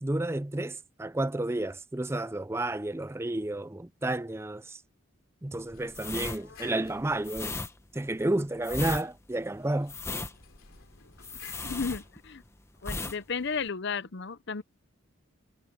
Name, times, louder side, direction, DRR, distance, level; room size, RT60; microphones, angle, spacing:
voice 1, 0.0-4.8 5.4-7.6 7.9-9.9, right 1 dB, 10° right, 0.5 m, -31 dB
sound 1, 5.4-7.9 9.6-12.7, left 5 dB, 80° left, 3.1 m, -55 dB
sound 2, 5.9-12.5 12.8-13.2 13.4-13.7, left 3 dB, 15° left, 0.9 m, -37 dB
voice 2, 11.5-12.4 12.8-14.6, left 5 dB, 55° left, 0.7 m, -34 dB
head